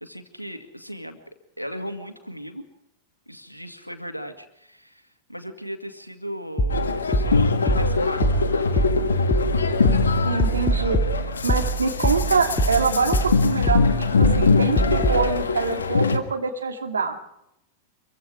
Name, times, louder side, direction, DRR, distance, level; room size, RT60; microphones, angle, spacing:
voice 1, 0.0-1.2 1.6-2.7 3.3-9.0, equal, 90° left, 7 dB, 2.0 m, -37 dB
sound 1, 6.6-15.3, right 1 dB, 15° left, 2.4 m, -24 dB
sound 2, 6.7-16.2, left 4 dB, 70° left, 1.6 m, -22 dB
voice 2, 10.2-11.0 11.4-17.2, right 4 dB, 75° right, 5 dB, 2.4 m, -25 dB
26.0 x 23.0 x 4.9 m, 0.80 s
figure-of-eight pair, 90°, 0 cm